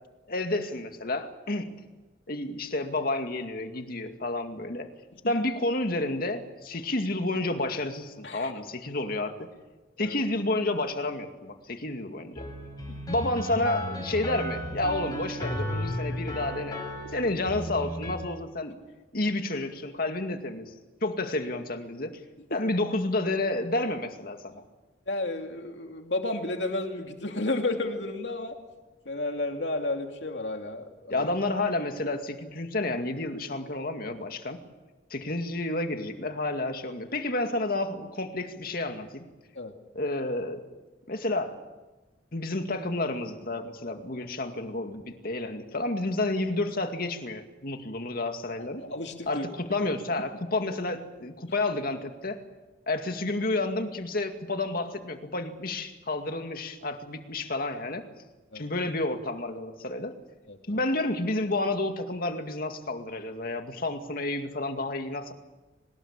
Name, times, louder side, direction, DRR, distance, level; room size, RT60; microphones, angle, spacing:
voice 1, 0.3-1.7 2.3-4.9 5.3-9.5 10.0-12.4 13.1-16.8 17.1-18.8 19.1-20.7 21.0-22.1 22.5-24.6 31.1-34.6 35.1-39.3 39.9-40.6 41.1-41.6 42.3-48.8 49.3-52.4 52.9-58.0 58.5-60.1 60.7-65.3, left 2 dB, 55° left, 6 dB, 2.2 m, -30 dB
sound 1, 12.4-18.2, equal, 25° left, 6.4 m, -34 dB
voice 2, 25.1-28.6 29.0-31.3 39.5-39.7 48.8-49.5 50.2-50.3 58.5-58.6 60.5-60.8, left 2 dB, 70° left, 4 dB, 2.8 m, -32 dB
23.0 x 20.0 x 8.8 m, 1.2 s
head